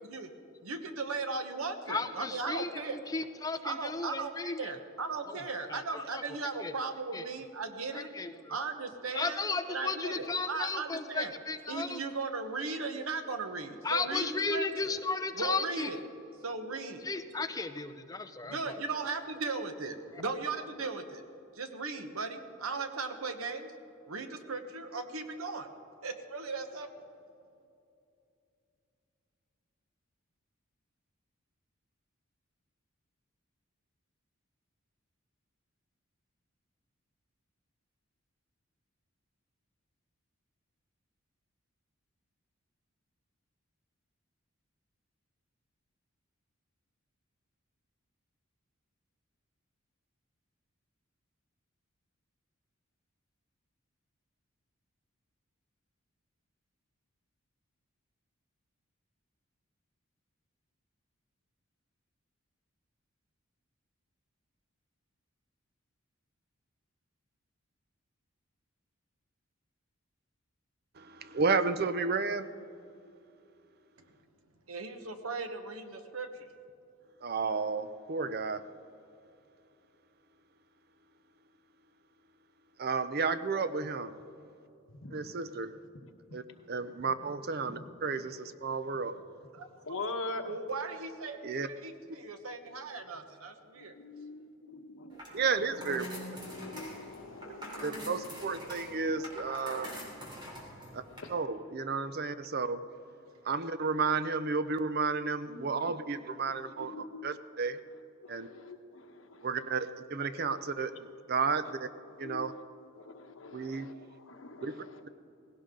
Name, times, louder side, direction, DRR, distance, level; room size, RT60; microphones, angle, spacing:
voice 1, 0.6-3.0 3.6-8.1 8.5-9.4 9.7-11.3 11.7-15.0 15.4-16.0 16.4-17.1 18.4-21.2 21.5-23.7 24.1-25.7 26.0-26.9 74.7-76.5 89.5-89.7 90.5-91.4 91.7-94.0, right 4 dB, 90° right, 7 dB, 1.2 m, -37 dB
voice 2, 1.9-4.7 5.3-5.4 5.7-6.3 6.6-6.7 7.1-7.2 7.9-8.5 9.1-12.0 13.8-15.9 17.0-18.8, left 3 dB, 15° left, 9 dB, 0.6 m, -35 dB
voice 3, 71.0-72.5 77.2-78.6 82.8-84.1 85.1-85.7 86.3-86.4 86.7-89.1 91.4-91.7 95.3-96.1 97.8-99.9 100.9-101.0 101.3-102.8 103.5-106.9 107.2-107.8 108.3-108.5 109.4-110.9 111.3-111.9 112.2-112.5 113.5-113.9 114.6-114.7, right 4 dB, 50° right, 12 dB, 0.6 m, -32 dB
voice 4, 84.9-85.2 86.0-86.1 87.7-87.8 89.9-90.5 93.8-98.3 100.5-101.3 105.5-106.1 106.5-107.6 108.2-109.7 112.1-112.7 112.9-115.1, left 2 dB, 70° left, 5 dB, 1.2 m, -44 dB
sound 1, 95.1-101.2, equal, 20° right, 3.2 m, -45 dB
18.0 x 16.5 x 3.8 m, 2.7 s
head